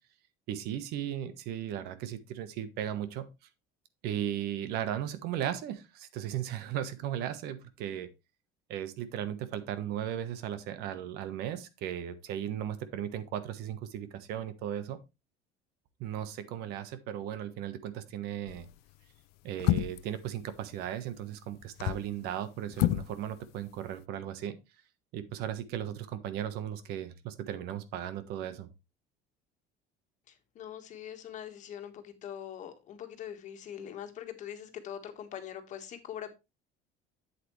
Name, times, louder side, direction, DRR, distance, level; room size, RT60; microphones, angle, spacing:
voice 1, 0.5-3.3 4.0-8.1 8.7-15.0 16.0-18.7 19.4-24.6 25.1-28.7, right 10 dB, 70° right, 12 dB, 1.2 m, -36 dB
sound 1, 18.5-18.8 19.6-20.1 21.6-22.1 22.7-23.1 23.4-23.5, left 17 dB, 70° left, 0.5 m, -29 dB
voice 2, 30.3-36.3, left 9 dB, 45° left, 7 dB, 1.6 m, -43 dB
8.2 x 7.9 x 3.2 m, 0.25 s
cardioid pair, 140°, 17 cm